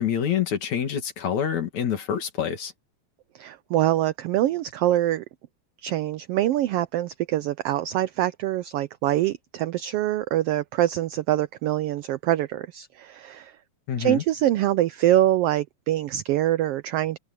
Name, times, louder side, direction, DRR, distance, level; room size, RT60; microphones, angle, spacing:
voice 1, 0.0-2.7 13.9-14.2, left 8 dB, 75° left, 3.6 m, -26 dB
voice 2, 3.3-5.2 5.8-13.5 14.0-17.2, right 13 dB, 85° right, 1.3 m, -24 dB
omnidirectional pair, 3.3 m